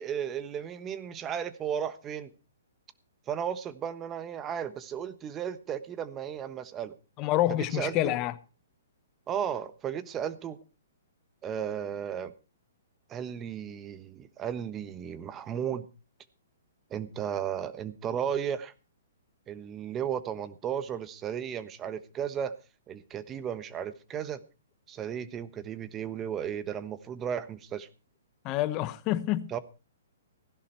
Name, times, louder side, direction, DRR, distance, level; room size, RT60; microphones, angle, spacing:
voice 1, 0.0-2.3 3.3-7.0 7.5-8.2 9.3-10.6 11.4-12.3 13.1-15.9 16.9-18.7 19.5-22.5 22.9-24.4 24.9-27.9 29.5-29.6, right 8 dB, 20° right, 1.2 m, -34 dB
voice 2, 7.2-8.3 28.4-29.6, left 14 dB, 30° left, 1.0 m, -28 dB
16.0 x 11.0 x 4.3 m
hypercardioid pair, 135°, 0 cm